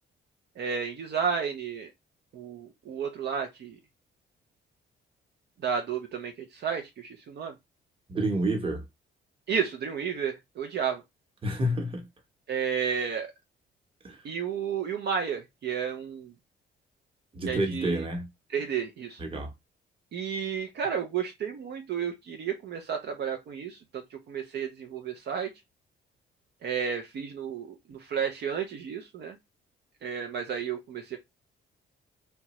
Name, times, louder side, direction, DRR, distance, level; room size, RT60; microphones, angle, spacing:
voice 1, 0.6-1.9 2.3-3.8 5.6-7.5 9.5-11.0 12.5-13.3 14.2-16.3 17.5-18.0 18.5-19.2 20.1-25.5 26.6-29.4 30.0-31.2, right 7 dB, 60° right, 0.5 m, -32 dB
voice 2, 8.1-8.8 11.4-12.0 14.0-14.2 17.3-18.3 19.2-19.5, right 1 dB, 25° right, 1.0 m, -29 dB
2.8 x 2.2 x 2.9 m
cardioid pair, 90°, 20 cm